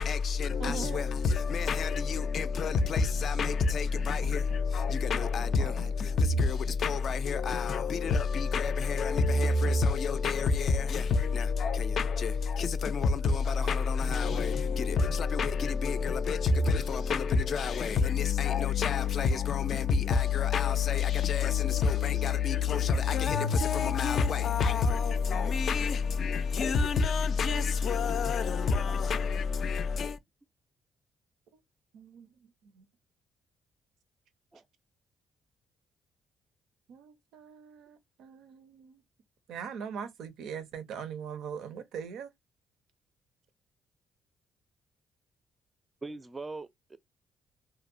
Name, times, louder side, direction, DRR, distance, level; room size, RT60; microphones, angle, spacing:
voice 1, 0.0-30.2, left 5 dB, 60° left, 0.3 m, -28 dB
voice 2, 0.6-1.0 2.8-4.6 5.4-5.9 6.7-7.0 13.9-14.7 15.1-15.5 23.4-23.6 23.8-25.3 25.8-26.1 26.9-27.1 27.4-27.7 31.9-32.9 36.9-39.0 39.5-42.3, right 7 dB, 85° right, 0.5 m, -43 dB
voice 3, 46.0-47.0, right 3 dB, 25° right, 0.4 m, -41 dB
2.7 x 2.0 x 2.4 m
cardioid pair, 90°, 0 cm